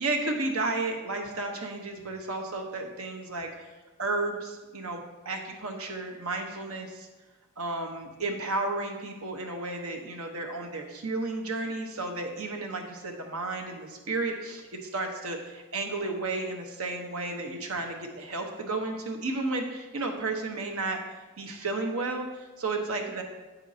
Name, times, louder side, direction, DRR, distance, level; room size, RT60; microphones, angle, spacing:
voice 1, 0.0-3.5 4.0-7.1 7.6-21.0 21.4-23.2, right 2 dB, 75° right, 3 dB, 1.1 m, -32 dB
9.1 x 8.1 x 2.8 m, 1.2 s
head